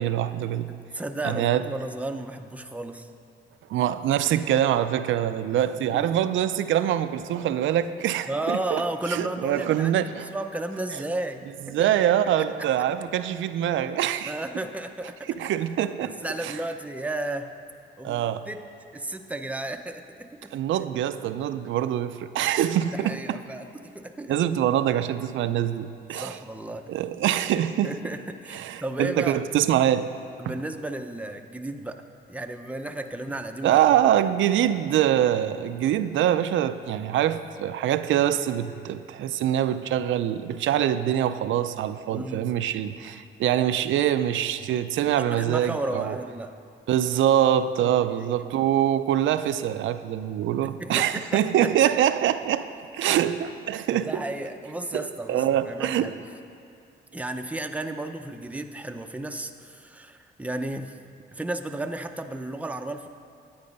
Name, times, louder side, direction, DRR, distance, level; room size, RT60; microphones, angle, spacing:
voice 1, 0.0-0.7 1.2-1.6 3.7-8.8 9.1-10.3 11.7-14.3 15.3-16.6 18.0-18.5 20.5-23.4 24.3-26.4 26.9-28.0 28.5-30.1 30.4-30.5 33.6-46.2 46.9-52.6 52.9-54.3 54.9-56.1, right 11 dB, 75° right, 12 dB, 0.5 m, -24 dB
voice 2, 0.7-3.1 5.8-6.1 8.3-11.9 14.2-15.5 16.0-17.5 18.0-18.6 18.9-20.5 22.9-24.4 26.1-26.9 27.8-29.4 30.4-32.0 32.3-33.8 42.1-42.5 45.3-46.5 47.8-48.5 50.6-51.7 53.9-56.2 57.1-61.0 61.3-63.1, right 2 dB, 5° right, 6 dB, 0.6 m, -33 dB
10.5 x 8.8 x 5.3 m, 2.6 s
cardioid pair, 90°, 20 cm